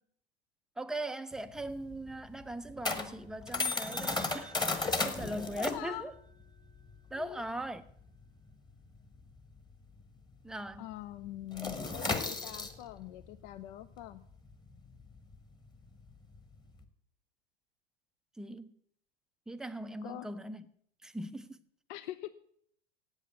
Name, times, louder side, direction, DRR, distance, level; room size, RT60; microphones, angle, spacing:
voice 1, 0.8-6.1 7.1-7.8 10.4-10.9 18.4-18.7 19.5-20.6 21.0-21.6, right 1 dB, ahead, 0.5 m, -40 dB
sound 1, 1.3-10.3 10.5-10.8 11.1-16.8, left 3 dB, 15° left, 1.2 m, -36 dB
voice 2, 5.6-6.0 7.1-7.4 10.8-14.2 20.0-20.3 21.9-22.3, left 14 dB, 50° left, 0.6 m, -43 dB
8.3 x 8.2 x 8.7 m
figure-of-eight pair, 90°, 31 cm